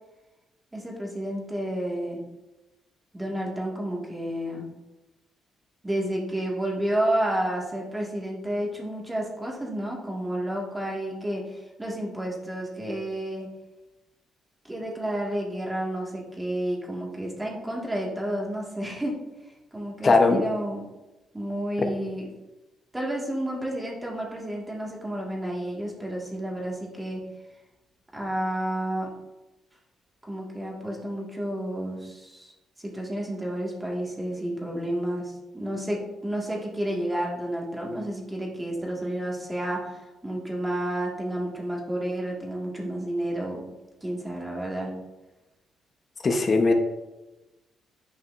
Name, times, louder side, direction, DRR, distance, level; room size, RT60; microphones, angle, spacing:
voice 1, 0.7-2.2 3.1-4.7 5.8-13.5 14.6-19.2 19.5-20.8 21.3-22.3 22.9-27.2 28.1-29.1 30.2-43.6 44.0-44.9, right 1 dB, 15° right, -2 dB, 2.0 m, -31 dB
voice 2, 20.0-20.4 46.2-46.7, left 3 dB, 40° left, 4 dB, 1.0 m, -19 dB
10.0 x 5.3 x 2.6 m, 1.1 s
cardioid pair, 80°, 0 cm